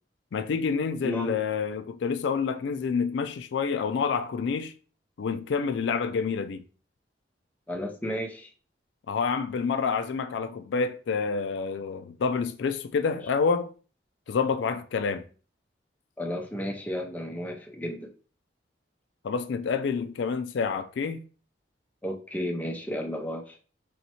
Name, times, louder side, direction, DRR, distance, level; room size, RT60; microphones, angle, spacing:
voice 1, 0.3-4.7 5.2-6.6 9.1-13.7 14.3-15.2 19.2-21.2, left 5 dB, 75° left, 0.4 m, -28 dB
voice 2, 1.0-1.4 7.7-8.5 16.2-18.1 22.0-23.6, equal, 10° left, 0.5 m, -33 dB
4.2 x 3.2 x 2.9 m
head